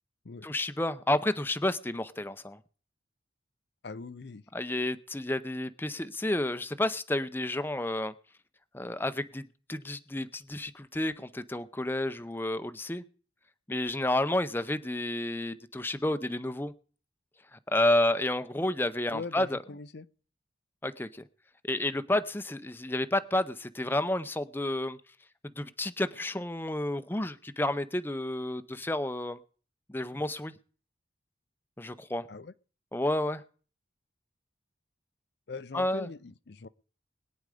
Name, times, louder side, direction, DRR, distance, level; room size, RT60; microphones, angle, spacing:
voice 1, 0.4-2.6 4.5-8.1 8.7-9.4 9.7-13.0 13.7-16.7 17.5-19.6 20.8-21.2 21.7-25.0 25.6-29.4 29.9-30.5 31.8-32.3 32.9-33.4 35.7-36.1, left 1 dB, 10° left, 0.6 m, -30 dB
voice 2, 3.8-4.4 19.1-20.0 32.3-32.5 35.5-36.7, left 4 dB, 60° left, 0.6 m, -41 dB
21.0 x 9.6 x 4.9 m
head